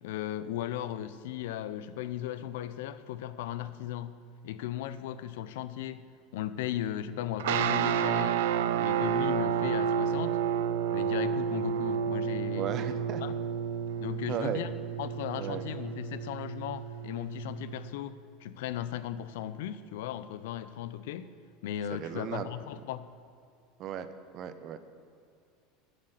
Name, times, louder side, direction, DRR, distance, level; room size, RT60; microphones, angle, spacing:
voice 1, 0.0-6.0 6.3-8.4 8.8-10.4 10.9-12.9 13.2-13.3 14.0-21.3 21.6-23.1, left 11 dB, 80° left, 0.4 m, -36 dB
sound 1, 7.4-17.9, right 8 dB, 85° right, 0.4 m, -30 dB
voice 2, 12.5-13.2 14.3-14.7 15.4-15.6 21.9-22.5 23.8-24.1 24.3-24.8, right 9 dB, 40° right, 0.6 m, -35 dB
7.6 x 6.5 x 7.6 m
supercardioid pair, 145°, 0 cm